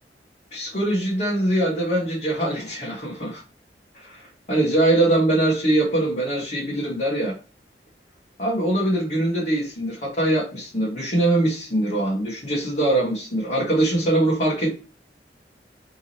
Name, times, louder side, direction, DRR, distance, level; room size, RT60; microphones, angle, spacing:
voice 1, 0.5-3.4 3.9-7.3 8.4-14.8, right 1 dB, 40° left, -6 dB, 1.3 m, -22 dB
3.5 x 3.0 x 2.8 m, 0.35 s
head